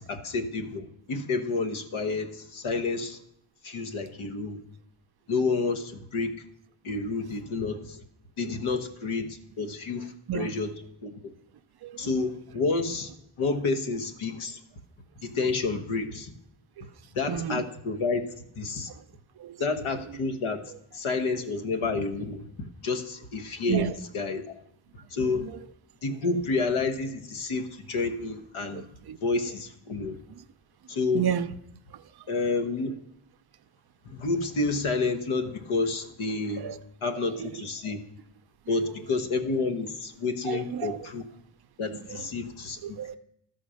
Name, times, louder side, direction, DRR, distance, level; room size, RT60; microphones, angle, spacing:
voice 1, 0.0-3.2 3.6-4.6 5.3-6.4 6.8-8.0 8.4-10.7 11.0-11.3 12.0-13.1 13.4-14.6 15.2-16.3 17.1-18.3 18.5-18.9 19.6-23.9 24.1-24.6 25.1-25.4 26.0-28.9 29.2-30.2 30.9-31.3 32.3-33.0 34.0-36.7 37.0-38.0 38.7-41.2 41.8-43.0, left 3 dB, 80° left, 6 dB, 1.2 m, -29 dB
voice 2, 17.3-17.6 18.9-19.0 19.4-19.6 23.7-24.0 25.4-25.6 28.7-29.2 31.1-31.5 31.9-32.3 36.6-36.8 37.2-37.5 38.7-38.8 40.4-41.0 42.1-42.2 42.8-43.2, right 9 dB, 50° right, 11 dB, 0.5 m, -32 dB
13.0 x 4.3 x 6.3 m, 0.76 s
cardioid pair, 100°, 49 cm